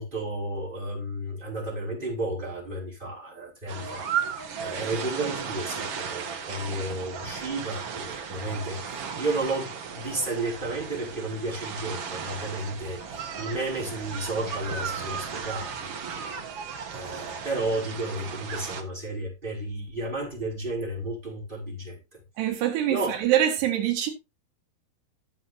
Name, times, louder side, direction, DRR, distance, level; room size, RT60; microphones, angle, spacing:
voice 1, 0.0-22.0 22.9-23.2, right 2 dB, 10° right, 5.9 m, -33 dB
sound 1, 3.7-18.8, right 6 dB, 60° right, 1.6 m, -35 dB
voice 2, 22.4-24.1, right 11 dB, 90° right, 3.8 m, -25 dB
17.0 x 7.5 x 2.8 m
omnidirectional pair, 4.6 m